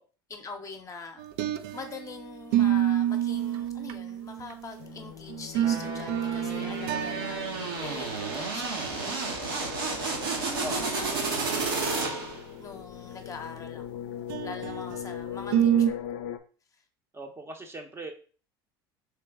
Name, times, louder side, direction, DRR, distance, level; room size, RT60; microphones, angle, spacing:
voice 1, 0.3-1.3 1.7-11.6 11.8-14.0 14.4-16.2, left 4 dB, 25° left, 5 dB, 0.7 m, -44 dB
sound 1, 1.2-2.1 2.5-4.7 5.3-7.7 8.0-8.1 8.5-8.7 10.1-10.2 10.6-10.8 14.3-15.0 15.5-15.9, right 11 dB, 65° right, 0.4 m, -27 dB
sound 2, 4.8-16.4, left 9 dB, 75° left, 0.4 m, -41 dB
sound 3, 5.6-12.5, right 4 dB, 80° right, 1.1 m, -32 dB
voice 2, 17.1-18.1, right 1 dB, 20° right, 4 dB, 0.7 m, -39 dB
3.2 x 3.0 x 3.5 m, 0.39 s
hypercardioid pair, 80°, 12 cm